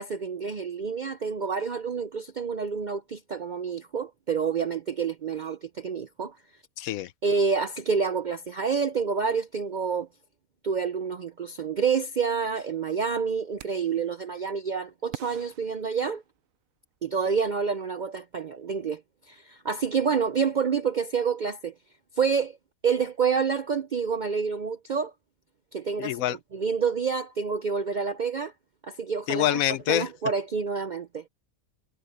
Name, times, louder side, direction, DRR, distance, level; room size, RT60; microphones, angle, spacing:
voice 1, 0.0-6.4 7.2-10.1 10.6-16.2 17.0-19.0 19.3-21.7 22.2-22.6 22.8-25.1 25.7-28.5 28.8-29.6 29.9-31.2, right 6 dB, 60° right, 0.5 m, -28 dB
voice 2, 6.8-7.1 26.0-26.4 29.3-30.1, left 13 dB, 75° left, 1.0 m, -26 dB
sound 1, 13.6-14.1 15.1-16.6, right 13 dB, 75° right, 1.0 m, -44 dB
omnidirectional pair, 1.5 m